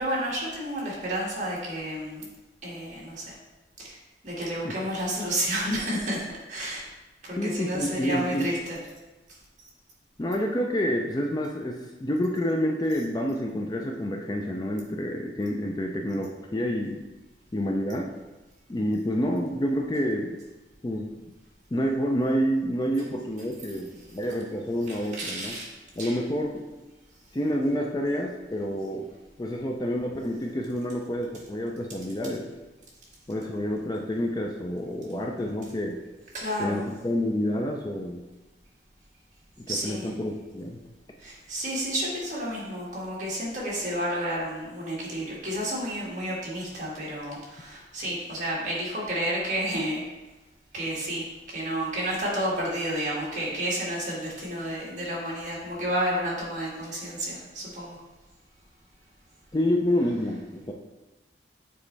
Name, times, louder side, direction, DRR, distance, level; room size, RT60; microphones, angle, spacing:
voice 1, 0.0-2.3 2.6-3.3 3.8-4.0 4.2-6.9 7.2-8.8 24.9-26.2 36.3-36.8 39.7-40.1 41.2-50.0 50.7-58.0, right 1 dB, 40° right, -5 dB, 1.9 m, -31 dB
voice 2, 7.4-8.5 10.2-17.0 17.5-18.1 18.7-20.4 20.8-21.3 21.7-25.6 26.0-26.7 27.3-29.1 29.4-32.5 33.3-36.0 36.6-38.2 39.6-40.8 59.5-60.7, equal, 20° left, 1 dB, 0.4 m, -28 dB
7.2 x 4.3 x 3.3 m, 1.1 s
head